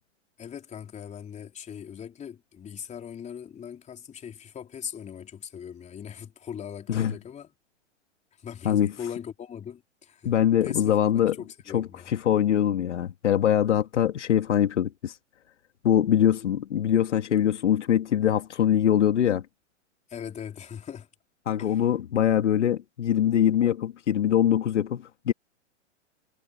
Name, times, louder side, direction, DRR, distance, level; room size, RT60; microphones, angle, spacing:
voice 1, 0.4-7.5 8.4-10.3 10.6-11.0 11.3-12.1 20.1-21.1 21.6-21.9, left 8 dB, 20° left, 3.8 m, -39 dB
voice 2, 10.2-11.4 11.7-15.1 15.8-19.4 21.5-25.3, left 10 dB, 75° left, 2.4 m, -23 dB
hypercardioid pair, 120°, 36 cm